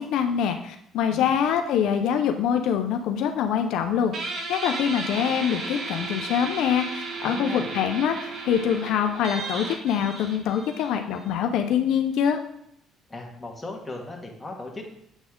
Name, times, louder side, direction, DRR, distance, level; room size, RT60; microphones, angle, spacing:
voice 1, 0.0-12.4, left 8 dB, 80° left, 6 dB, 0.5 m, -25 dB
Guitar, 4.1-11.3, right 3 dB, 50° right, 1.2 m, -34 dB
voice 2, 7.2-7.7 13.1-14.8, left 2 dB, 15° left, 0 dB, 1.5 m, -37 dB
7.9 x 4.1 x 3.6 m, 0.74 s
cardioid pair, 100°, 0 cm